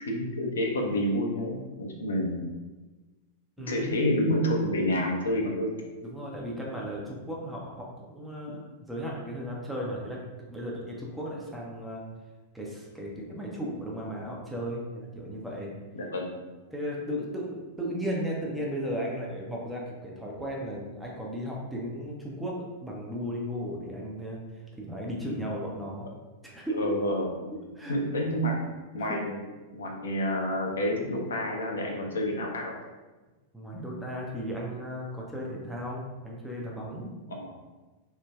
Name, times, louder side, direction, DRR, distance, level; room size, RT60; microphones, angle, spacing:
voice 1, 0.1-2.4 3.7-5.8 15.9-16.3 26.7-27.3 27.9-28.6 28.9-29.4 29.7-32.7 37.3-37.6, equal, 70° left, 0 dB, 0.5 m, -28 dB
voice 2, 3.6-4.1 6.0-10.2 10.5-12.0 12.5-15.7 16.7-26.1 26.4-26.8 27.8-27.9 29.0-29.2 33.5-37.1, equal, 5° right, -3 dB, 0.5 m, -35 dB
3.2 x 2.1 x 2.2 m, 1.2 s
figure-of-eight pair, 95°, 0 cm